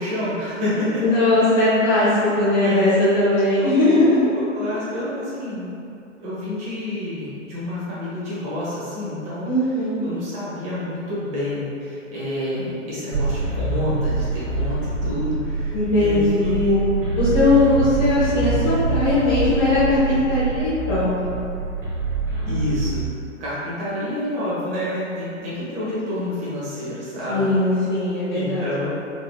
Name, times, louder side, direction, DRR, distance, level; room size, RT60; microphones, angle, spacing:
voice 1, 0.0-1.0 1.9-2.1 2.6-2.9 3.6-3.7 4.3-5.7 6.2-9.5 10.0-17.1 22.5-23.1 23.4-27.5 28.3-28.9, left 1 dB, 20° right, -9 dB, 0.8 m, -28 dB
voice 2, 1.0-2.1 2.3-4.3 9.4-10.0 15.7-16.8 17.2-21.3 27.3-28.7, left 2 dB, 15° left, -14 dB, 0.5 m, -19 dB
sound 1, 13.1-22.9, right 3 dB, 40° right, 1.3 m, -25 dB
4.1 x 2.7 x 2.2 m, 2.6 s
figure-of-eight pair, 115°, 39 cm